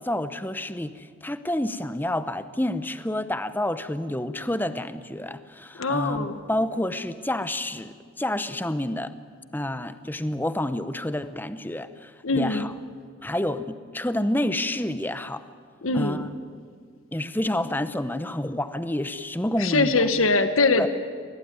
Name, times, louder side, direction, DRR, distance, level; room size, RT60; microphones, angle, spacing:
voice 1, 0.0-9.1 9.5-12.7 13.2-15.4 15.9-16.4 17.1-20.0 20.8-20.9, left 1 dB, 10° left, 12 dB, 0.7 m, -29 dB
voice 2, 5.8-6.3 12.2-12.7 15.8-16.3 19.6-20.9, left 3 dB, 90° left, 10 dB, 1.3 m, -22 dB
21.0 x 18.0 x 9.5 m, 2.1 s
head